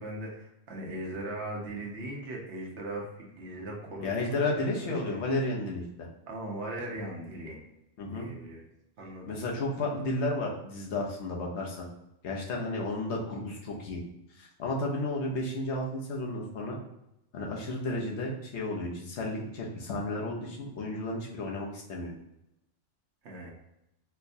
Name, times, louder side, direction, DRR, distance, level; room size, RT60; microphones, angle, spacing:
voice 1, 0.0-5.2 6.3-7.6 8.1-8.7 9.0-9.4 9.7-9.9 23.2-23.5, right 1 dB, 65° right, -2 dB, 1.0 m, -39 dB
voice 2, 4.0-5.8 8.0-8.3 9.3-11.8 12.2-14.0 14.4-16.7 17.3-22.1, left 2 dB, 70° left, -2 dB, 0.9 m, -32 dB
4.3 x 2.1 x 2.6 m, 0.85 s
omnidirectional pair, 1.2 m